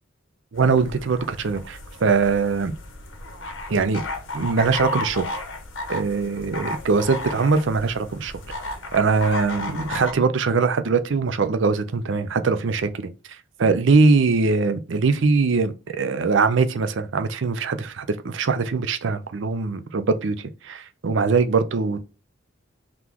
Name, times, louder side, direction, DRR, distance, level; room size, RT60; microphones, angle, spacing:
sound 1, 0.5-10.1, left 2 dB, 70° left, 1.0 m, -34 dB
voice 1, 0.5-2.7 3.7-4.0 4.3-5.2 5.9-8.3 8.9-13.1 13.6-20.4 20.6-22.0, right 4 dB, 65° right, 0.5 m, -22 dB
4.0 x 3.0 x 3.5 m
head